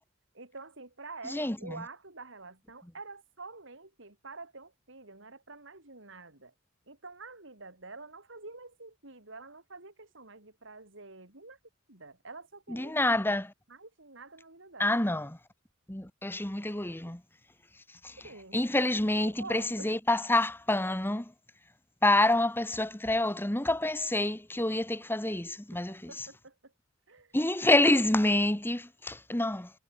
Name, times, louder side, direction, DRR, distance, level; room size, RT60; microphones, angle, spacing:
voice 1, 0.3-6.5 6.9-11.6 11.9-13.2 13.7-15.0 18.2-18.6 19.2-20.0 25.2-25.4 25.7-26.7 27.1-27.3, right 3 dB, 65° right, 4.3 m, -47 dB
voice 2, 12.7-13.5 14.8-15.4 15.9-17.2 18.0-18.2 18.5-21.3 22.0-26.3 27.3-29.7, left 1 dB, 10° left, 1.3 m, -27 dB
head